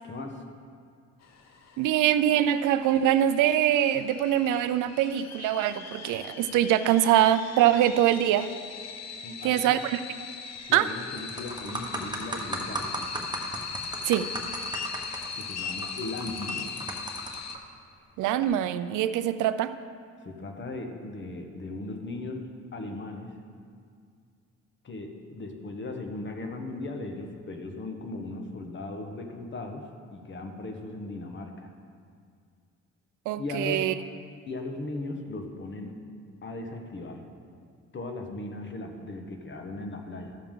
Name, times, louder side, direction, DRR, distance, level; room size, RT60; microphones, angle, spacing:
voice 1, 0.0-0.4 9.2-9.8 10.6-13.0 15.3-16.9 20.2-23.3 24.8-31.7 33.4-33.9 34.5-36.0 36.4-37.2 37.9-40.4, left 2 dB, 40° left, 4 dB, 1.2 m, -37 dB
sound 1, 1.2-17.6, left 6 dB, 60° left, 0.9 m, -40 dB
voice 2, 1.8-8.5 9.4-10.0 10.7-10.9 14.0-14.3 18.2-19.7 33.3-33.9, right 11 dB, 90° right, 12 dB, 0.5 m, -23 dB
sound 2, 10.6-10.8 11.2-17.6 18.3-18.5, right 2 dB, 15° right, 1.1 m, -36 dB
13.0 x 6.9 x 3.7 m, 2.2 s
cardioid pair, 90°, 30 cm